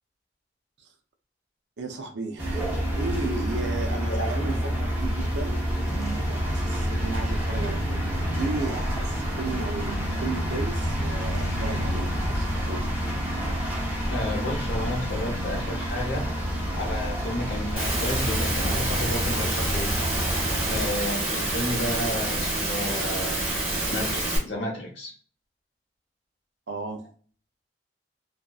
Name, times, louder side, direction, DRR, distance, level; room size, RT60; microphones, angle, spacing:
voice 1, 1.8-5.7 6.3-13.0 21.5-21.6 26.7-27.0, right 3 dB, 75° right, 0.5 m, -35 dB
sound 1, 2.4-20.9, equal, 10° right, 0.8 m, -28 dB
voice 2, 3.9-4.5 14.1-16.3 16.7-20.0 20.7-23.4 23.9-25.1, left 1 dB, 70° left, 0.9 m, -32 dB
sound 2, 5.9-12.6, left 1 dB, 20° left, 0.4 m, -40 dB
Engine / Mechanisms, 17.8-24.4, right 2 dB, 30° right, 1.2 m, -28 dB
2.5 x 2.3 x 2.3 m
head